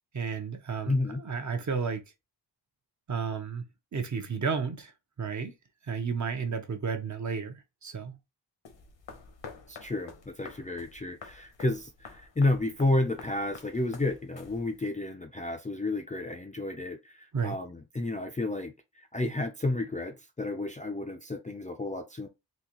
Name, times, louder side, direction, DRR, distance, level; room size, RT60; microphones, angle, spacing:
voice 1, 0.1-1.0 1.2-2.0 3.1-3.6 3.9-4.9 5.2-5.5 5.9-8.2 17.3-17.6, right 5 dB, 40° right, 0.7 m, -32 dB
voice 2, 0.8-1.2 9.7-22.3, left 2 dB, 20° left, 0.4 m, -31 dB
sound 1, 8.6-14.9, left 5 dB, 85° left, 1.0 m, -49 dB
3.9 x 2.7 x 2.9 m
wide cardioid pair, 135°, 43 cm